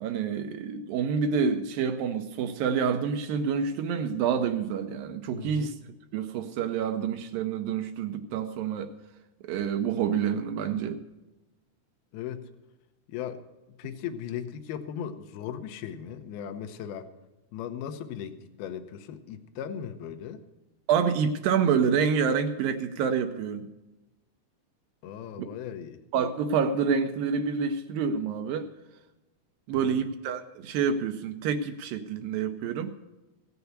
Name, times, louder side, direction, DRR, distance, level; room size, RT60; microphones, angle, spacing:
voice 1, 0.0-5.7 6.1-8.9 9.4-11.0 20.9-23.7 25.4-25.5 26.1-28.7 29.7-32.9, right 6 dB, 75° right, 8 dB, 2.2 m, -27 dB
voice 2, 5.3-5.7 12.1-12.5 13.1-13.4 13.8-17.1 17.5-20.4 25.0-26.0 29.7-30.1, left 9 dB, 80° left, 7 dB, 2.7 m, -37 dB
16.5 x 6.9 x 8.0 m, 1.0 s
omnidirectional pair, 4.6 m